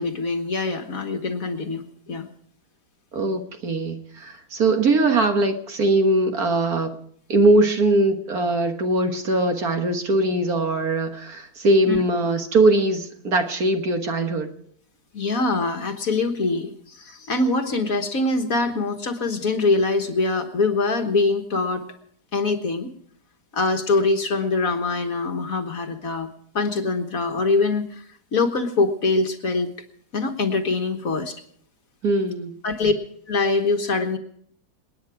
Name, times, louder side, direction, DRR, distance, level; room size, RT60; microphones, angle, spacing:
voice 1, 0.0-2.3 11.9-12.0 15.1-21.8 22.3-22.9 23.5-26.3 26.5-28.0 28.3-29.7 30.1-31.4 32.6-32.9 33.3-34.2, left 3 dB, 50° left, 5 dB, 1.6 m, -23 dB
voice 2, 3.1-6.9 7.3-14.5 32.0-32.5, right 2 dB, 55° right, 5 dB, 1.8 m, -21 dB
28.0 x 9.6 x 4.9 m, 0.65 s
omnidirectional pair, 2.0 m